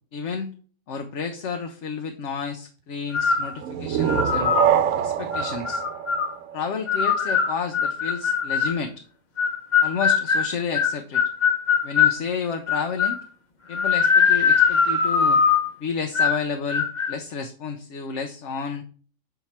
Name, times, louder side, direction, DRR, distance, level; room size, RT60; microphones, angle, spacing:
voice 1, 0.1-0.5 0.9-4.6 5.0-5.8 6.5-9.0 9.8-11.3 11.8-13.2 13.7-15.4 15.8-18.8, left 5 dB, 65° left, 5 dB, 1.0 m, -31 dB
sound 1, 3.1-3.5 4.1-4.7 5.3-6.3 6.9-8.8 9.4-12.2 12.7-13.2 13.7-15.7 16.1-16.4 16.7-17.1, left 6 dB, 40° left, 0.9 m, -21 dB
sound 2, 3.6-7.2, right 9 dB, 80° right, 1.0 m, -25 dB
7.9 x 4.6 x 4.3 m, 0.42 s
omnidirectional pair, 1.4 m